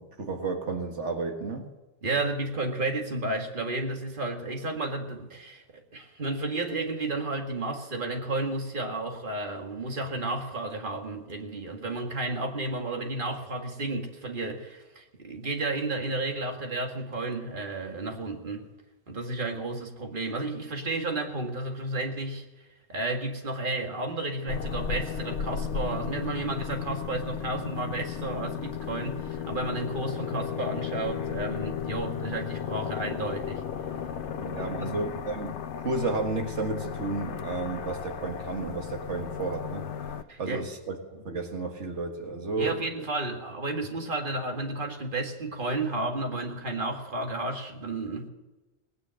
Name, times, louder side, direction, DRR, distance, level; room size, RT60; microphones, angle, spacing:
voice 1, 0.0-1.7 34.3-39.9 40.4-42.8, right 3 dB, 90° right, 3 dB, 1.9 m, -32 dB
voice 2, 2.0-18.7 19.1-22.5 22.9-33.6 34.6-35.0 40.3-40.6 42.6-48.3, right 2 dB, 45° right, 3 dB, 2.1 m, -32 dB
sound 1, 24.5-40.2, left 8 dB, 80° left, 1.0 m, -35 dB
19.0 x 9.8 x 7.6 m, 1.1 s
omnidirectional pair, 1.2 m